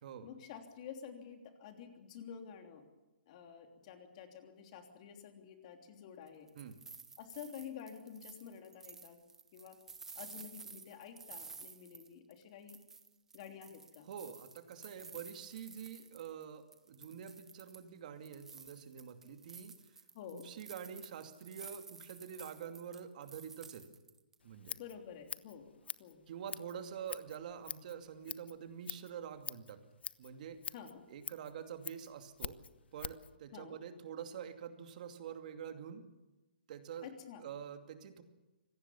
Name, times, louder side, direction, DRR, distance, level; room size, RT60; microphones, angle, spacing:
voice 1, 0.2-2.8 3.3-6.5 7.2-9.2 9.5-9.8 10.1-12.8 13.3-14.1 20.1-20.5 24.7-25.7 26.0-26.2 30.7-31.0 33.5-33.8 37.0-37.5, left 8 dB, 40° left, 5 dB, 3.1 m, -50 dB
sound 1, 6.3-12.4 12.7-16.4 16.7-17.9 18.2-24.3, right 5 dB, 5° right, 1.0 m, -53 dB
voice 2, 14.1-19.7 20.3-23.8 24.4-24.8 26.3-29.8 30.2-30.6 31.1-32.6 32.9-36.0 36.7-37.1 37.4-38.2, right 8 dB, 50° right, 7 dB, 2.5 m, -46 dB
Scissors, 24.4-33.3, left 6 dB, 85° left, 1.0 m, -46 dB
25.5 x 18.0 x 7.2 m, 1.1 s
hypercardioid pair, 155°, 6 cm